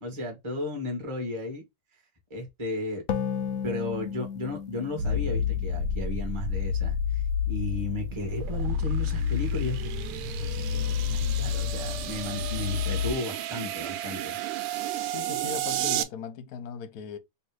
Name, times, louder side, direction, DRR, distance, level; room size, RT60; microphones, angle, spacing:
voice 1, 0.0-1.6 2.3-3.0 3.6-14.4, left 2 dB, 15° right, 1.1 m, -35 dB
sound 1, 3.1-6.6, left 7 dB, 80° left, 0.7 m, -34 dB
sound 2, 5.0-13.1, left 7 dB, 65° right, 1.2 m, -29 dB
sound 3, 8.0-16.0, right 12 dB, 85° right, 1.5 m, -34 dB
voice 2, 15.1-17.2, left 7 dB, 65° left, 1.0 m, -38 dB
3.5 x 2.8 x 4.7 m
omnidirectional pair, 2.3 m